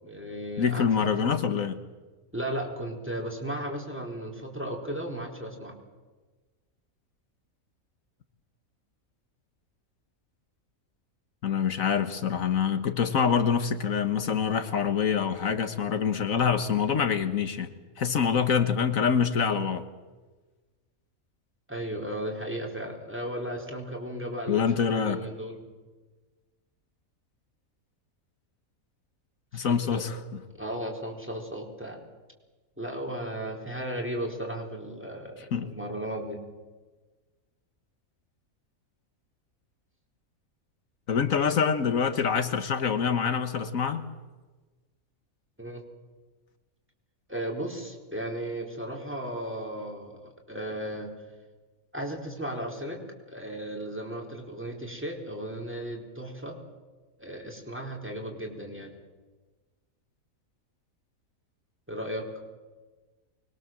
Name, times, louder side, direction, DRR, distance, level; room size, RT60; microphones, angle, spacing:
voice 1, 0.0-0.9 1.2-1.3 2.3-5.7 21.7-25.6 29.6-30.1 30.6-32.0 32.8-36.4 45.6-45.8 47.3-51.1 51.9-53.0 53.3-56.6 57.2-58.9 61.9-62.2, right 1 dB, 10° right, 1 dB, 4.2 m, -35 dB
voice 2, 0.6-1.8 11.4-17.7 18.0-19.8 24.5-25.2 29.5-30.2 35.5-35.7 41.1-44.1, left 6 dB, 70° left, 9 dB, 1.7 m, -25 dB
25.0 x 22.0 x 7.6 m, 1.3 s
omnidirectional pair, 1.5 m